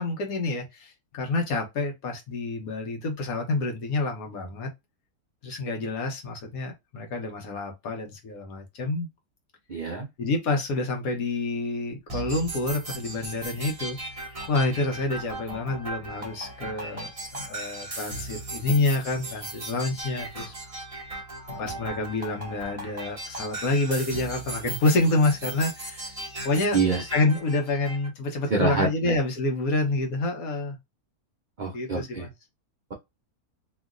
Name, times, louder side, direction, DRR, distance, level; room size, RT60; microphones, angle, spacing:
voice 1, 0.0-4.7 5.4-9.1 10.2-14.0 14.5-20.5 21.6-26.1 26.4-26.8 27.1-30.8 31.7-32.3, left 2 dB, 70° left, 1.3 m, -28 dB
voice 2, 9.7-10.1 26.7-27.1 28.5-29.2 31.6-32.3, right 4 dB, 55° right, 0.5 m, -26 dB
sound 1, 12.1-28.1, right 2 dB, 30° right, 0.8 m, -37 dB
3.0 x 2.7 x 2.4 m
omnidirectional pair, 1.6 m